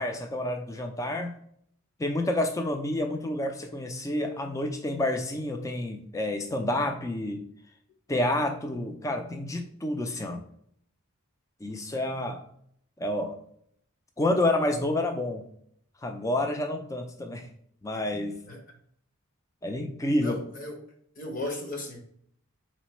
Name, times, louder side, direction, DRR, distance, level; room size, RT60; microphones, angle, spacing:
voice 1, 0.0-1.3 2.0-7.4 8.1-10.4 11.6-12.4 13.0-13.4 14.2-15.5 16.0-17.5 17.8-18.4 19.6-20.4, left 1 dB, 15° left, 5 dB, 0.3 m, -29 dB
voice 2, 20.2-20.8 21.2-22.0, left 1 dB, 40° left, 2 dB, 0.8 m, -36 dB
4.1 x 3.1 x 3.0 m, 0.67 s
head